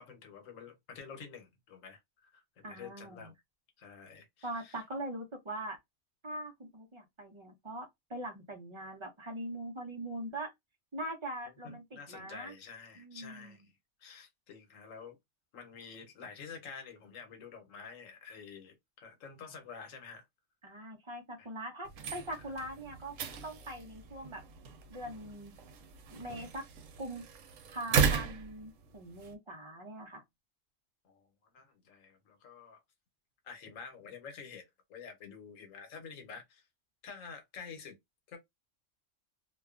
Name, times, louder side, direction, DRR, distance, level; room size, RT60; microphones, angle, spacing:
voice 1, 0.0-3.3 3.8-4.8 11.6-13.7 14.0-15.2 15.5-20.3 21.4-21.5 31.0-31.3 31.5-32.8 33.4-36.7 37.0-37.9 38.3-38.4, left 5 dB, 90° left, 1.2 m, -49 dB
voice 2, 2.6-3.3 4.4-5.8 6.2-10.5 10.9-12.5 13.0-13.7 20.6-23.2 23.4-24.4 24.9-25.5 26.1-26.7 27.0-27.3 27.7-30.2, right 1 dB, 40° right, 0.4 m, -42 dB
sound 1, 21.8-29.3, right 6 dB, 85° right, 1.0 m, -36 dB
2.5 x 2.2 x 2.3 m
omnidirectional pair, 1.3 m